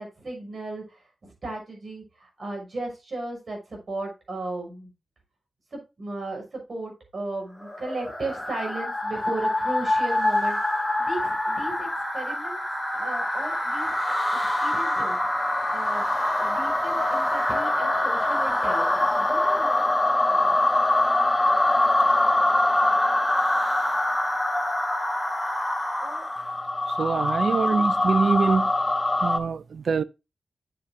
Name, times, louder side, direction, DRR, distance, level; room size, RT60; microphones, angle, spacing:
voice 1, 0.0-4.9 5.7-10.6 11.0-11.9 12.1-12.6 12.9-14.1 14.4-15.2 15.7-20.6 20.9-21.0 26.0-26.3, right 2 dB, 55° right, 6.1 m, -36 dB
sound 1, 7.6-26.5, left 1 dB, ahead, 3.3 m, -27 dB
sound 2, 14.8-24.6 25.7-29.4, left 2 dB, 20° left, 0.9 m, -24 dB
voice 2, 27.0-28.7 29.2-30.0, right 5 dB, 75° right, 0.5 m, -24 dB
8.6 x 8.4 x 2.7 m
wide cardioid pair, 115°, 0 cm